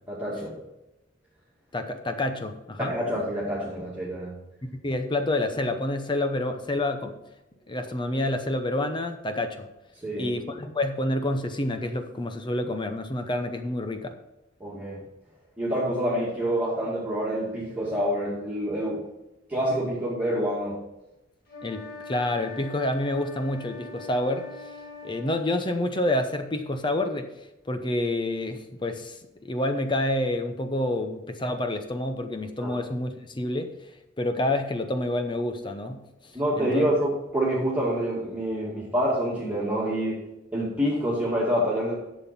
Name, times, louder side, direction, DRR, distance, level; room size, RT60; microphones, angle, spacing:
voice 1, 0.1-0.6 2.8-4.3 10.0-10.3 14.6-15.0 15.6-19.0 19.5-20.8 32.6-32.7 36.3-40.2 40.5-41.9, equal, 10° right, -8 dB, 2.3 m, -27 dB
voice 2, 1.7-2.9 4.8-7.2 7.7-9.7 10.2-14.2 21.6-24.5 25.0-27.3 27.7-33.7 34.2-36.1 36.6-36.8, left 1 dB, 25° left, 7 dB, 0.8 m, -28 dB
sound 1, 21.5-25.4, left 3 dB, 50° left, 2.2 m, -42 dB
11.0 x 7.2 x 4.3 m, 0.93 s
head